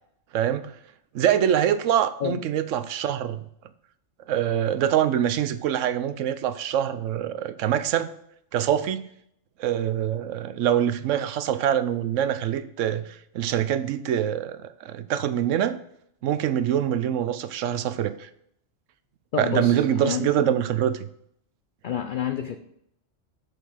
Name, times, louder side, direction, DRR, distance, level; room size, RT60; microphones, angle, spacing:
voice 1, 0.3-0.7 1.1-3.4 4.3-8.1 8.5-9.0 9.6-15.8 16.2-18.3 19.4-21.1, right 10 dB, 75° right, 12 dB, 1.0 m, -24 dB
voice 2, 19.3-20.5 21.8-22.6, left 9 dB, 55° left, 7 dB, 0.6 m, -29 dB
6.7 x 6.6 x 4.9 m, 0.72 s
omnidirectional pair, 1.3 m